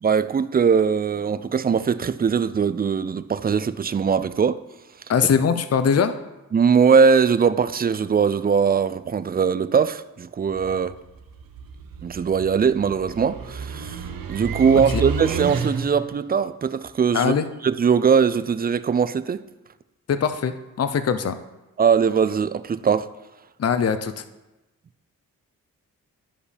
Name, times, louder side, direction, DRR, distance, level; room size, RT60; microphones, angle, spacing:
voice 1, 0.0-4.6 6.5-10.9 12.0-17.3 17.6-19.4 21.8-23.1, right 6 dB, 25° right, 0.4 m, -21 dB
voice 2, 5.1-6.2 14.7-15.0 17.1-17.4 20.1-21.4 23.6-24.2, left 6 dB, 45° left, 0.6 m, -22 dB
sound 1, 10.5-16.1, right 5 dB, 70° right, 0.8 m, -31 dB
11.0 x 4.9 x 3.3 m
cardioid pair, 55°, 35 cm